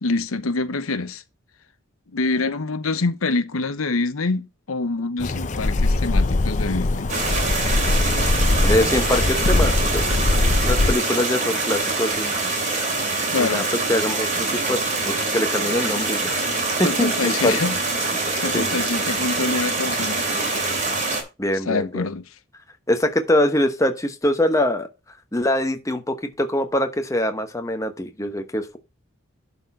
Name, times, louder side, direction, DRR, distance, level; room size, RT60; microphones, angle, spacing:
voice 1, 0.0-1.2 2.1-7.1 13.3-13.7 16.8-17.8 18.3-20.3 21.6-22.3, left 3 dB, 90° left, 0.9 m, -25 dB
sound 1, 5.2-10.9, left 2 dB, 35° left, 0.6 m, -21 dB
sound 2, 7.1-21.2, right 3 dB, 35° right, 2.9 m, -24 dB
voice 2, 8.6-10.1 10.6-12.3 13.4-13.6 13.9-16.4 16.8-17.6 18.5-18.8 21.4-22.1 22.9-24.9 25.3-28.8, left 1 dB, 15° left, 1.0 m, -23 dB
11.5 x 4.3 x 5.4 m
head